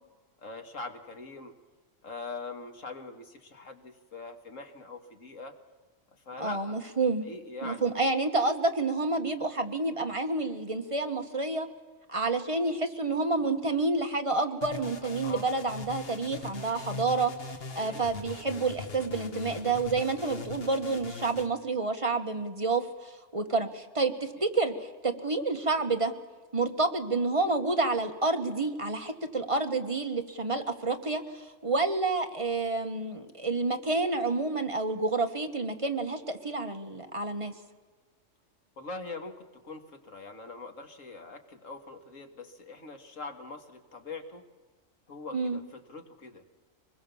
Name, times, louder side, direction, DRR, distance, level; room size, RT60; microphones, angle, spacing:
voice 1, 0.4-1.5 2.0-5.6 6.1-6.8 7.2-7.9 15.2-15.5 17.8-18.1 24.4-24.5 38.8-44.4 45.1-46.4, left 3 dB, 75° left, 5 dB, 2.3 m, -43 dB
voice 2, 6.4-7.3 7.6-11.7 12.1-17.3 17.7-26.1 26.5-37.5 45.3-45.6, right 3 dB, 25° right, 5 dB, 1.4 m, -29 dB
sound 1, 14.6-21.5, left 4 dB, 50° left, 1.6 m, -41 dB
24.5 x 21.0 x 7.1 m, 1.3 s
omnidirectional pair, 1.4 m